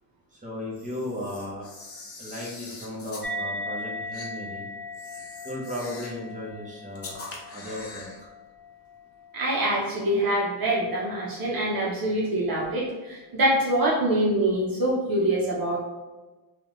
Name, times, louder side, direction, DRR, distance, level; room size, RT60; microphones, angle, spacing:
voice 1, 0.3-1.7 2.2-4.7 5.4-7.2 7.5-8.1, left 1 dB, 15° right, -4 dB, 1.1 m, -35 dB
Camera, 0.7-3.3 4.1-4.3 4.9-6.2 6.9-8.2, left 3 dB, 30° left, 0.9 m, -43 dB
sound 1, 3.2-10.1, left 1 dB, ahead, 0.6 m, -38 dB
voice 2, 9.3-15.8, right 1 dB, 50° right, -4 dB, 0.9 m, -25 dB
3.3 x 2.5 x 3.1 m, 1.2 s
cardioid pair, 90°, 46 cm